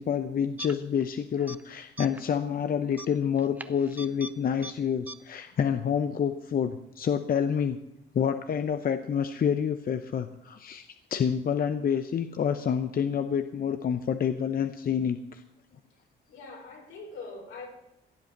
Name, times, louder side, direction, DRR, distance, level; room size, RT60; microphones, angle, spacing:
voice 1, 0.0-7.8 8.1-10.9 11.1-15.4, left 7 dB, 45° left, 9 dB, 0.8 m, -28 dB
sound 1, 0.6-1.1 1.4-1.6 2.0-2.3 2.9-4.3 4.6-4.7 5.1-5.2, right 1 dB, 10° right, 0.6 m, -41 dB
voice 2, 16.3-17.7, left 3 dB, 80° left, 0 dB, 5.0 m, -42 dB
16.0 x 8.1 x 7.3 m, 0.85 s
cardioid pair, 90°, 20 cm